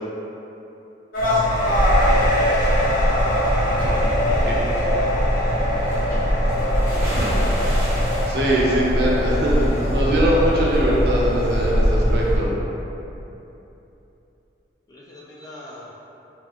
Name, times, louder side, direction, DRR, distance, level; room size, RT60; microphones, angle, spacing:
sound 1, 1.1-11.9, left 1 dB, 50° left, 1.2 m, -24 dB
sound 2, 1.2-12.4, equal, 20° right, 1.3 m, -22 dB
voice 1, 4.2-7.3 14.9-15.9, left 1 dB, 20° left, -6 dB, 0.4 m, -45 dB
voice 2, 8.3-12.5, right 1 dB, 60° right, -4 dB, 0.5 m, -22 dB
3.6 x 2.6 x 2.4 m, 3.0 s
head